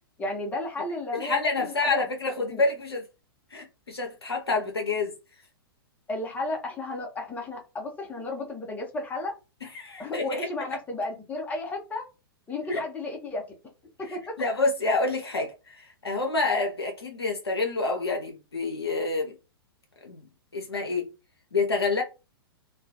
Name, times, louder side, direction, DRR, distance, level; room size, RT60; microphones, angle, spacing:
voice 1, 0.2-2.0 2.5-2.6 6.1-9.3 10.0-12.0 12.5-13.4 14.0-14.3, left 2 dB, 10° left, 0.7 m, -33 dB
voice 2, 1.1-3.1 3.5-5.1 9.6-10.5 12.7-12.9 14.1-19.3 20.0-20.3 20.5-21.1 21.5-22.0, left 3 dB, 85° left, 0.5 m, -28 dB
2.2 x 2.1 x 2.7 m
figure-of-eight pair, 110°, 13 cm